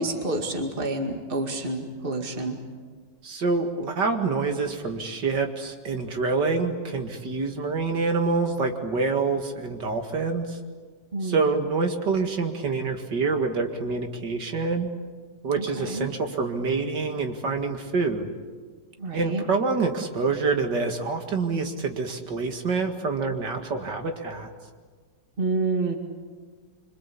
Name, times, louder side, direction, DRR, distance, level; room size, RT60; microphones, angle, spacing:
voice 1, 0.0-2.6 11.1-11.6 15.6-16.1 19.0-19.4 25.4-26.0, right 2 dB, 30° right, 4 dB, 2.4 m, -28 dB
voice 2, 3.2-10.6 11.2-14.9 15.4-18.3 19.1-24.5, right 4 dB, 70° right, 5 dB, 2.7 m, -26 dB
26.0 x 25.5 x 8.5 m, 1.5 s
omnidirectional pair, 1.9 m